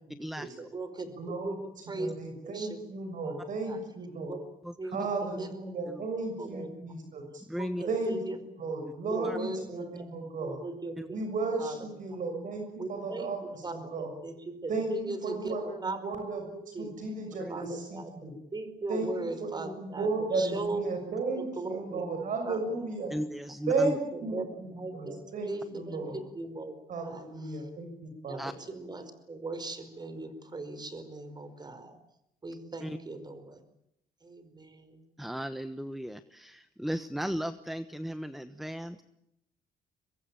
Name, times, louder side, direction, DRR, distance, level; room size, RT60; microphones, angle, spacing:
voice 1, 0.1-0.5 1.2-4.4 4.9-7.4 7.9-8.2 8.6-10.6 11.1-14.1 14.7-18.3 18.9-23.1 23.7-26.2 26.9-28.4, right 3 dB, 55° right, 4 dB, 6.5 m, -34 dB
voice 2, 0.6-1.1 1.4-2.1 2.4-2.8 3.2-3.3 3.7-3.8 4.3-4.4 4.8-4.9 5.3-5.5 6.4-6.9 7.6-8.4 9.1-10.1 10.4-11.2 11.6-11.8 12.1-12.2 12.8-13.9 14.2-15.6 15.8-16.0 16.7-16.9 17.5-20.1 20.3-20.8 21.4-22.0 22.5-22.6 24.1-26.7 27.0-27.3 27.5-27.6 28.3-32.0 32.4-33.6 34.2-35.0, right 3 dB, 25° right, 11 dB, 5.1 m, -39 dB
voice 3, 4.6-5.0 5.9-6.0 7.5-7.8 9.2-9.4 11.0-11.1 17.4-17.6 23.1-24.0 28.4-28.5 32.8-33.0 35.2-39.0, equal, ahead, 12 dB, 1.1 m, -36 dB
24.5 x 21.0 x 9.1 m, 0.81 s
cardioid pair, 105°, 16 cm